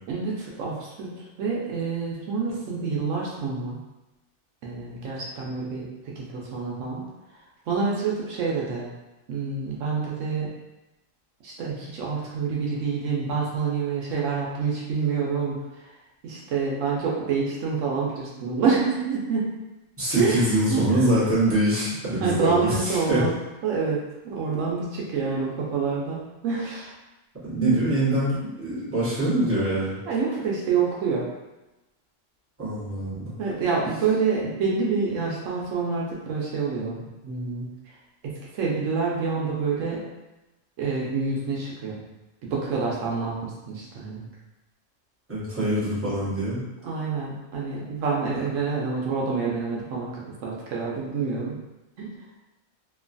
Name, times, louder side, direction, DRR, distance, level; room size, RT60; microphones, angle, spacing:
voice 1, 0.1-3.8 4.6-7.0 7.7-8.9 9.3-10.5 11.4-15.9 16.2-19.5 20.2-21.1 22.2-23.3 23.6-26.9 27.5-27.8 30.1-31.3 33.4-37.7 38.5-40.0 40.8-42.0 42.4-44.3 46.8-51.6 52.0-52.1, right 5 dB, 75° right, -3 dB, 1.0 m, -27 dB
voice 2, 20.0-23.2 27.4-30.0 32.6-33.3 45.3-46.6, right 1 dB, 10° right, -11 dB, 0.9 m, -24 dB
3.0 x 2.2 x 2.5 m, 1.0 s
omnidirectional pair, 1.3 m